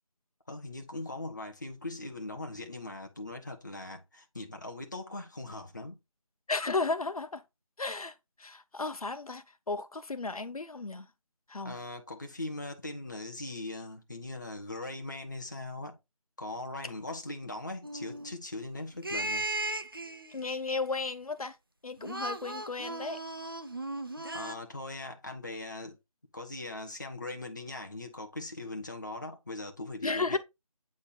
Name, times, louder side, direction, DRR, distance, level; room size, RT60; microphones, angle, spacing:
voice 1, 0.5-6.0 11.6-16.0 16.4-19.4 24.3-26.0 26.3-30.4, left 2 dB, 30° left, 1.1 m, -40 dB
voice 2, 6.5-7.4 7.8-8.1 8.4-11.1 11.5-11.7 20.3-21.6 21.8-23.2 30.0-30.4, left 3 dB, 80° left, 0.9 m, -34 dB
sound 1, 17.8-18.3 19.0-20.5 22.0-24.6, right 2 dB, 40° right, 0.6 m, -36 dB
8.6 x 3.6 x 4.0 m
figure-of-eight pair, 180°, 18 cm